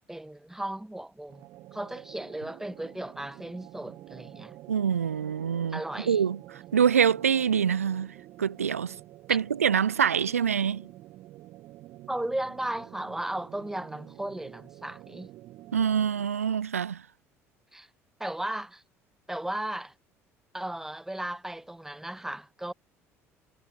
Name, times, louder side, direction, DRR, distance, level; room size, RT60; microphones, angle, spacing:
voice 1, 0.1-1.5 1.7-4.6 5.7-6.2 9.3-9.4 12.1-15.3 17.7-17.9 18.2-18.8 19.3-19.9 20.5-22.7, right 1 dB, 5° right, 1.2 m, -35 dB
sound 1, 1.3-16.4, right 16 dB, 50° right, 1.7 m, -49 dB
voice 2, 4.7-5.8 6.1-6.4 6.7-8.9 9.3-10.9 15.7-17.0, right 7 dB, 80° right, 0.4 m, -25 dB
figure-of-eight pair, 60°, 8 cm